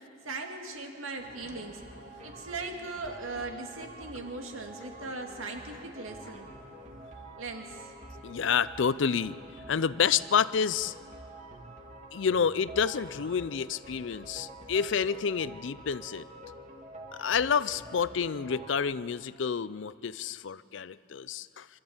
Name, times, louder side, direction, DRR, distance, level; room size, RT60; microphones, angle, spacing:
voice 1, 0.2-1.8 2.2-6.5 7.4-7.9, right 3 dB, 90° right, 3 dB, 2.3 m, -39 dB
sound 1, 1.2-18.8, right 1 dB, 35° right, 2.2 m, -47 dB
voice 2, 8.2-9.4 9.7-10.9 12.1-16.2 17.2-21.7, left 6 dB, 65° left, 18 dB, 0.5 m, -29 dB
25.5 x 13.5 x 8.7 m, 2.5 s
head